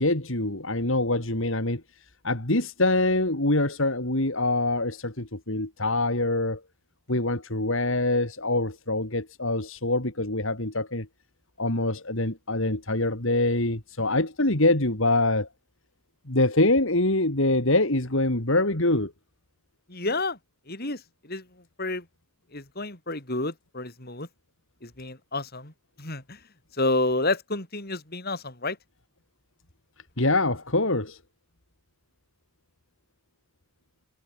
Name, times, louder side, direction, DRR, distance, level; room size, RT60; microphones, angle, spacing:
voice 1, 0.0-1.8 2.2-6.6 7.1-11.1 11.6-15.5 16.3-19.1 30.2-31.2, left 2 dB, 60° left, 3.0 m, -24 dB
voice 2, 19.9-20.4 20.7-21.0 21.3-21.4 21.8-22.0 22.5-24.3 24.8-25.7 26.0-26.4 26.8-28.8, left 2 dB, 45° left, 4.4 m, -29 dB
head